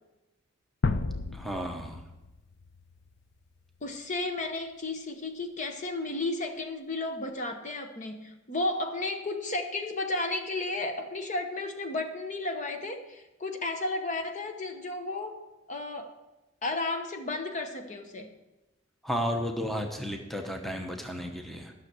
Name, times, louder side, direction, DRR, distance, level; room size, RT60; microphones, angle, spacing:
sound 1, 0.8-3.8, left 3 dB, 55° left, 0.5 m, -33 dB
voice 1, 1.3-2.1 19.0-21.7, equal, ahead, 3 dB, 0.9 m, -33 dB
voice 2, 3.8-15.4 15.7-16.1 16.6-18.3, left 2 dB, 40° left, 5 dB, 1.0 m, -33 dB
12.0 x 6.5 x 6.1 m, 1.0 s
head